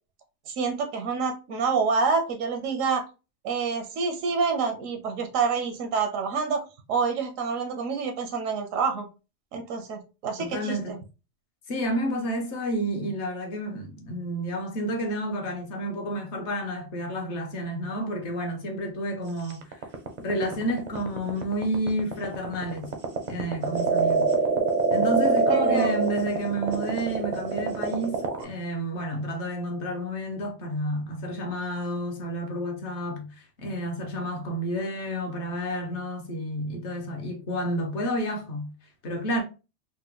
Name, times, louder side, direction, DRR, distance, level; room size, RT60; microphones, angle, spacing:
voice 1, 0.5-3.1 3.4-6.6 6.9-9.1 9.5-11.0 25.5-26.0, right 5 dB, 85° right, 1.0 m, -27 dB
voice 2, 10.4-10.9 11.7-19.8 20.2-22.9 23.3-24.3 24.9-38.7 39.0-39.4, right 1 dB, 65° left, 1.1 m, -30 dB
sound 1, 19.5-28.4, right 4 dB, 50° right, 0.5 m, -25 dB
3.7 x 2.2 x 2.8 m
omnidirectional pair, 1.3 m